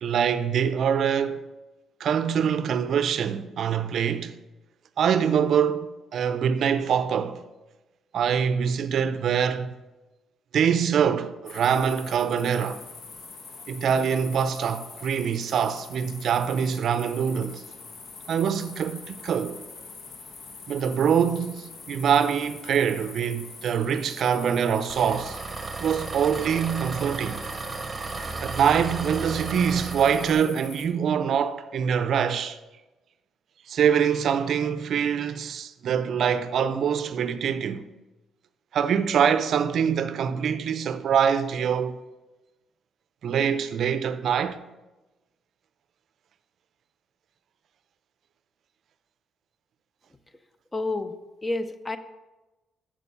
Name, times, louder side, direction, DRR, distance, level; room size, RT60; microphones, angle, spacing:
voice 1, 0.0-1.4 2.0-4.4 5.0-7.4 8.1-9.8 10.5-12.8 13.7-17.6 18.3-19.6 20.7-25.4 25.8-27.4 28.4-32.6 33.7-37.8 38.7-42.0 43.2-44.6, right 7 dB, 65° right, 0.5 m, -24 dB
sound 1, 11.4-30.9, left 4 dB, 60° left, 1.1 m, -44 dB
Engine, 24.9-30.3, right 4 dB, 30° right, 0.8 m, -34 dB
voice 2, 50.7-51.1 51.4-52.0, left 2 dB, 20° left, 0.6 m, -29 dB
7.3 x 6.8 x 5.5 m
cardioid pair, 90°, 0 cm